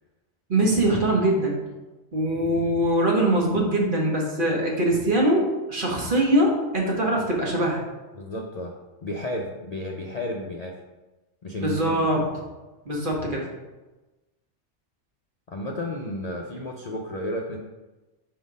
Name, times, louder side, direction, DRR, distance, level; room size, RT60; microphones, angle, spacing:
voice 1, 0.5-1.6 2.1-7.8 11.6-12.2 12.9-13.5, right 1 dB, 45° right, -1 dB, 1.2 m, -22 dB
voice 2, 8.1-8.8 9.0-10.7 11.4-12.0 15.5-17.6, left 1 dB, 50° left, 0 dB, 0.5 m, -32 dB
4.7 x 4.0 x 5.1 m, 1.1 s
omnidirectional pair, 1.2 m